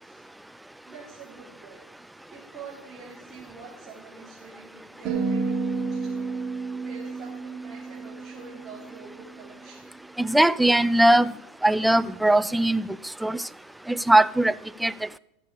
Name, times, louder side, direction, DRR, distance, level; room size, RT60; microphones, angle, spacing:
voice 1, 0.9-1.8 2.3-6.3 6.8-9.8, right 4 dB, 25° right, 3.7 m, -46 dB
sound 1, 5.1-9.4, right 4 dB, 40° right, 3.8 m, -31 dB
voice 2, 10.2-11.3 11.6-12.8 13.2-13.4 13.9-14.5 14.8-14.9, right 1 dB, 5° right, 0.3 m, -20 dB
15.0 x 6.7 x 4.9 m
hypercardioid pair, 105°, 0 cm